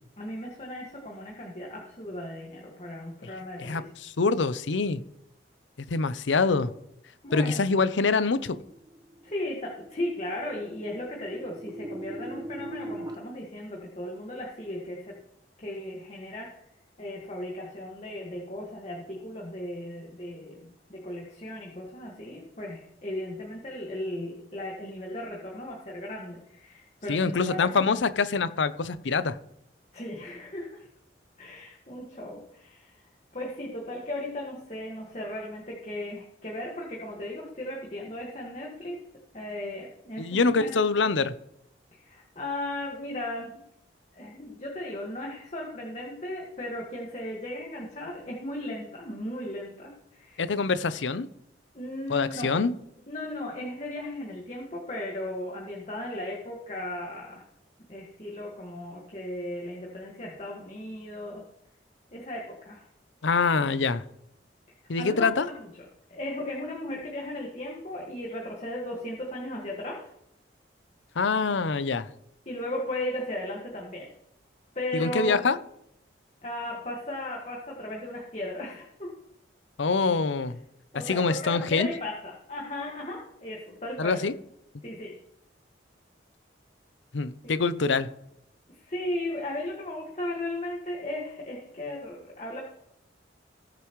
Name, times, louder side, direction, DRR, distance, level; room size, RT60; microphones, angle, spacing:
voice 1, 0.2-3.9 7.2-7.7 9.2-15.2 15.6-16.6 17.0-27.8 29.9-30.9 31.4-33.0 33.3-39.0 39.3-40.7 41.9-43.6 44.1-50.4 51.7-52.6 53.1-57.4 57.9-61.4 62.1-62.9 65.0-65.7 66.1-70.0 72.4-74.1 74.7-75.4 76.4-79.1 80.9-84.2 84.8-85.1 87.4-87.7 88.7-92.6, left 1 dB, 35° left, -2 dB, 1.7 m, -36 dB
voice 2, 3.6-5.0 5.9-6.7 7.3-8.6 27.1-29.4 40.2-41.3 50.4-51.3 52.1-52.7 63.2-64.0 64.9-65.5 71.2-72.1 74.9-75.6 79.8-80.6 81.1-81.9 84.0-84.3 87.1-88.1, left 4 dB, 85° left, 14 dB, 0.6 m, -25 dB
sound 1, 8.4-13.1, right 1 dB, 25° right, 1.2 m, -41 dB
19.5 x 6.8 x 3.1 m, 0.78 s
head